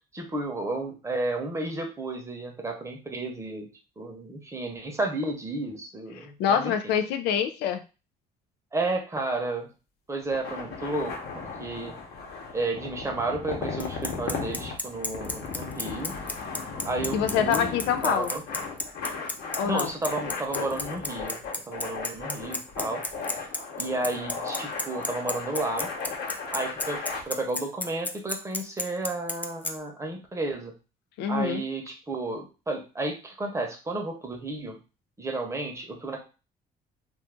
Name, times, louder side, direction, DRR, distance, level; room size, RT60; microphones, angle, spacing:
voice 1, 0.1-6.9 8.7-9.7 10.1-12.0 12.5-16.2 16.8-17.7 18.0-18.4 19.6-21.4 21.7-23.0 23.3-23.5 23.8-25.9 26.5-30.7 31.3-34.8 35.2-36.2, right 2 dB, 15° right, 2 dB, 0.8 m, -32 dB
voice 2, 6.4-7.8 17.1-18.3 19.6-19.9 31.2-31.6, left 8 dB, 85° left, 9 dB, 0.4 m, -25 dB
sound 1, 10.2-27.2, left 4 dB, 65° left, 1.0 m, -36 dB
Bicycle, 13.8-29.7, left 2 dB, 10° left, 0.3 m, -32 dB
2.5 x 2.5 x 3.5 m, 0.32 s
cardioid pair, 110°, 17 cm